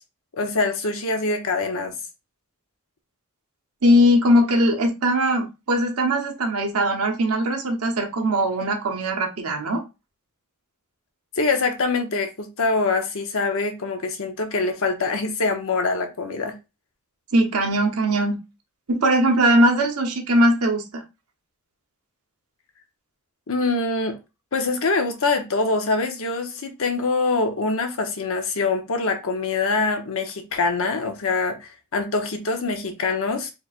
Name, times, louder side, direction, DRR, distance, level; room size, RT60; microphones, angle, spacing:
voice 1, 0.4-2.0 11.4-16.6 23.5-24.2 24.5-33.5, left 3 dB, 65° left, 0.8 m, -24 dB
voice 2, 3.8-9.8 17.3-18.4 18.9-21.0, equal, 80° right, 1.0 m, -20 dB
4.6 x 3.2 x 2.5 m
head